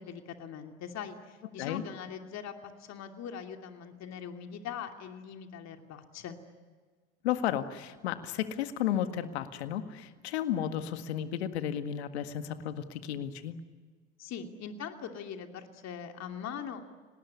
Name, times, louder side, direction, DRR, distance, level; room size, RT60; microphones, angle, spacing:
voice 1, 0.0-6.4 14.2-16.9, left 7 dB, 55° left, 5 dB, 2.7 m, -41 dB
voice 2, 7.2-13.6, left 10 dB, 85° left, 9 dB, 1.8 m, -33 dB
29.5 x 19.5 x 9.7 m, 1.4 s
hypercardioid pair, 70°, 32 cm